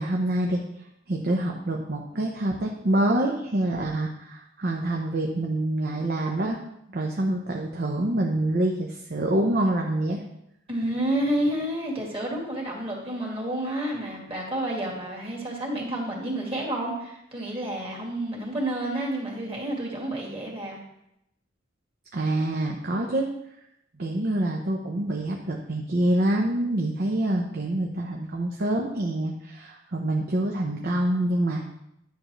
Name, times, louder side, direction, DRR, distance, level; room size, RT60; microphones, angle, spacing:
voice 1, 0.0-6.6 6.9-10.2 22.1-23.2 24.0-31.6, right 1 dB, 55° right, 1 dB, 0.8 m, -26 dB
voice 2, 10.7-20.8, right 1 dB, 30° right, -2 dB, 2.2 m, -30 dB
10.5 x 6.4 x 3.1 m, 0.80 s
head